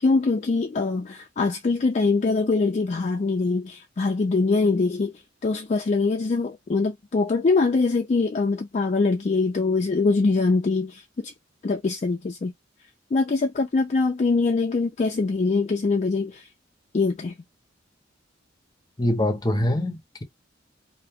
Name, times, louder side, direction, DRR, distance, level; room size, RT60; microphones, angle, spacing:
voice 1, 0.0-5.1 5.4-11.3 11.6-12.5 13.1-16.4 16.9-17.3, left 3 dB, 35° left, 0.4 m, -23 dB
voice 2, 19.0-20.2, left 1 dB, 20° left, 0.8 m, -24 dB
2.6 x 2.3 x 3.4 m
head